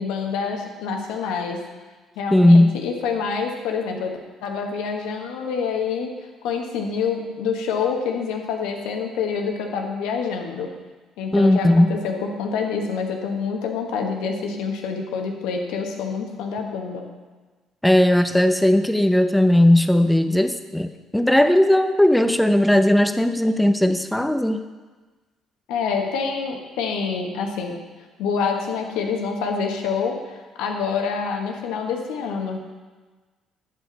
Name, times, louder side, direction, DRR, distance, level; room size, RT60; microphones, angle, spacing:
voice 1, 0.0-1.6 2.2-4.1 4.4-6.1 6.4-10.7 11.2-17.0 25.7-27.8 28.2-32.7, left 5 dB, 75° left, 3 dB, 1.3 m, -27 dB
voice 2, 2.3-2.7 11.3-12.0 17.8-24.6, left 1 dB, 5° left, 9 dB, 0.8 m, -17 dB
11.0 x 7.6 x 4.1 m, 1.3 s
hypercardioid pair, 50°, 0 cm